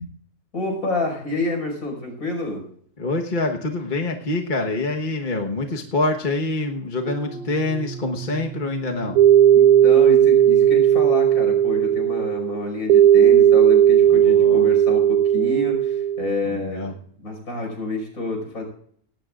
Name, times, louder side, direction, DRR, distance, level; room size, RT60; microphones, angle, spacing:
voice 1, 0.5-2.6 9.5-18.6, left 2 dB, 65° left, 3 dB, 5.9 m, -28 dB
voice 2, 3.0-9.2 14.1-14.7 16.4-16.9, left 2 dB, 35° left, 2 dB, 1.3 m, -26 dB
sound 1, 7.1-12.3, right 8 dB, 50° right, 2.4 m, -37 dB
sound 2, 9.2-16.4, right 10 dB, 75° right, 1.1 m, -15 dB
18.5 x 17.5 x 2.5 m, 0.63 s
omnidirectional pair, 1.6 m